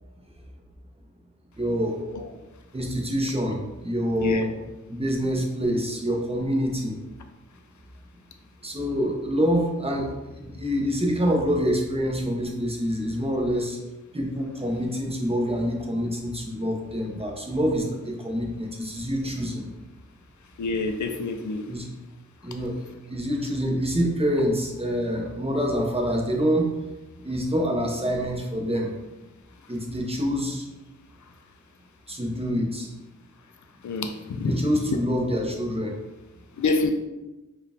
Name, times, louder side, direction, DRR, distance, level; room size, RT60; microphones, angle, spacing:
voice 1, 1.6-2.0 2.7-4.5 4.9-7.0 8.6-13.8 14.1-19.7 21.7-21.9 22.4-26.7 27.2-28.9 29.7-30.7 32.1-32.9 34.4-35.9, equal, 20° right, 0 dB, 0.8 m, -26 dB
voice 2, 20.6-21.6 33.8-34.1 34.4-34.5 36.6-36.9, left 3 dB, 70° left, 6 dB, 0.5 m, -26 dB
4.6 x 2.4 x 3.4 m, 1.1 s
wide cardioid pair, 60°, 31 cm